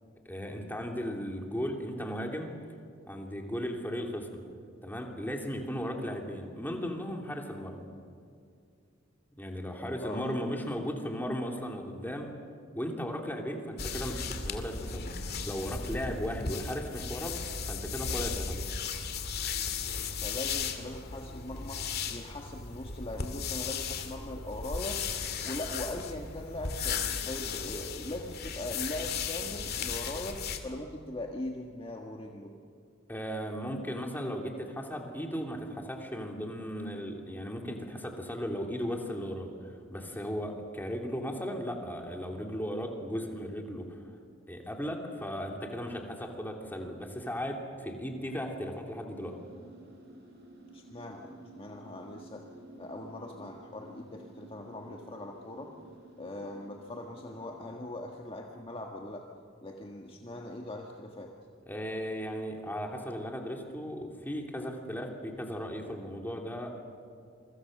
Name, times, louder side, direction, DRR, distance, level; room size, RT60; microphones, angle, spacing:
voice 1, 0.2-2.5 3.1-4.4 4.8-7.9 9.4-12.3 12.7-17.3 17.7-18.6 33.1-39.5 39.9-44.0 44.5-49.3 61.7-66.7, equal, 10° left, 1 dB, 3.1 m, -36 dB
voice 2, 10.0-10.3 20.2-25.0 25.4-32.5 50.7-52.5 52.8-55.7 56.2-59.2 59.6-61.3, left 1 dB, 30° left, 1 dB, 1.6 m, -40 dB
sound 1, 13.8-30.6, left 5 dB, 55° left, 2.3 m, -36 dB
sound 2, 49.1-57.8, right 1 dB, 60° right, 6.6 m, -53 dB
27.5 x 23.5 x 6.6 m, 2.3 s
head